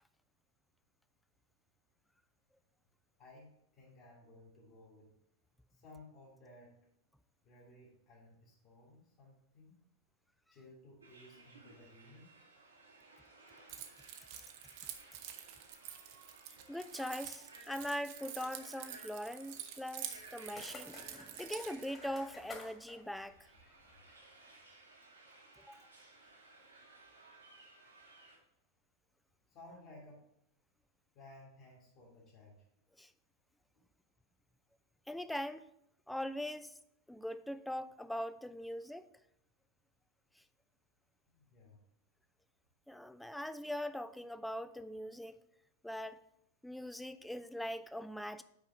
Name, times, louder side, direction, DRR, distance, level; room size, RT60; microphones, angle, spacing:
voice 1, 3.2-5.1 5.7-6.9 7.4-9.8 10.5-12.4 29.5-30.3 31.1-32.7 41.3-41.8, left 2 dB, 40° left, -7 dB, 1.8 m, -58 dB
sound 1, 11.0-28.4, right 3 dB, 75° right, 1.4 m, -59 dB
Keys jangling, 13.7-21.9, right 10 dB, 45° right, 0.7 m, -48 dB
voice 2, 16.7-23.5 25.7-25.8 33.0-33.1 35.1-35.6 36.1-36.8 37.1-39.1 40.4-40.5 42.9-45.4 45.8-46.2 46.6-48.4, equal, 5° left, 13 dB, 0.3 m, -41 dB
sound 2, 20.1-24.3, left 3 dB, 20° left, 1.6 m, -54 dB
5.8 x 4.8 x 5.7 m, 0.77 s
figure-of-eight pair, 90°, 0 cm